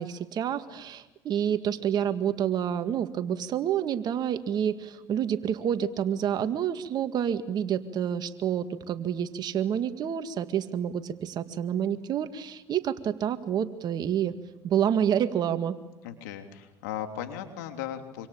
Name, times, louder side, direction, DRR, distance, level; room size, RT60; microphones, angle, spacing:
voice 1, 0.0-14.3 14.6-15.8, right 9 dB, 50° right, 9 dB, 2.0 m, -28 dB
voice 2, 16.0-18.3, left 10 dB, 80° left, 5 dB, 3.3 m, -37 dB
26.0 x 26.0 x 8.8 m, 1.0 s
hypercardioid pair, 80°, 9 cm